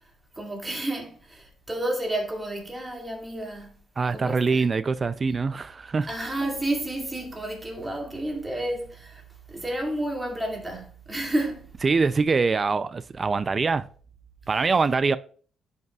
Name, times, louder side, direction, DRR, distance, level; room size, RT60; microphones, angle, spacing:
voice 1, 0.4-3.7 4.1-4.7 6.1-9.2 9.5-11.7, right 1 dB, 15° right, 2.3 m, -31 dB
voice 2, 4.0-6.1 11.8-13.9 14.5-15.2, right 4 dB, 35° right, 0.4 m, -24 dB
10.5 x 5.4 x 2.3 m
cardioid pair, 90°, 0 cm